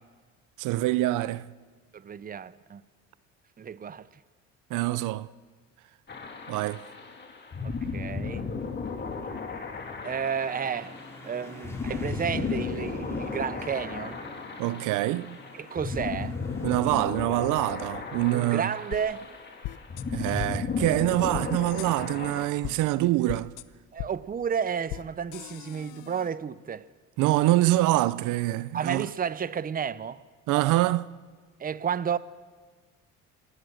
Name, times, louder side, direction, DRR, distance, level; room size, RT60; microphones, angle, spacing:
voice 1, 0.6-1.5 4.7-5.3 6.5-6.8 14.6-15.4 16.6-18.7 20.1-23.5 27.2-29.1 30.5-31.1, right 16 dB, 80° right, 0.7 m, -25 dB
voice 2, 1.9-2.8 3.6-4.1 7.6-8.5 10.0-11.0 11.2-14.2 15.5-16.4 18.3-19.3 23.0-23.2 23.9-26.9 28.7-30.2 31.6-32.2, right 7 dB, 30° right, 0.8 m, -32 dB
sound 1, 6.1-22.5, left 4 dB, 35° left, 3.0 m, -35 dB
sound 2, 10.4-16.8, left 1 dB, 10° left, 5.0 m, -42 dB
sound 3, 18.9-19.0 19.6-20.0 20.4-20.5 21.3-21.5 21.8-21.9 22.6-22.8 23.3-23.6 24.0-24.1 24.9-25.0 25.3-26.3, left 16 dB, 80° left, 0.9 m, -37 dB
27.0 x 19.0 x 6.5 m
cardioid pair, 100°, 31 cm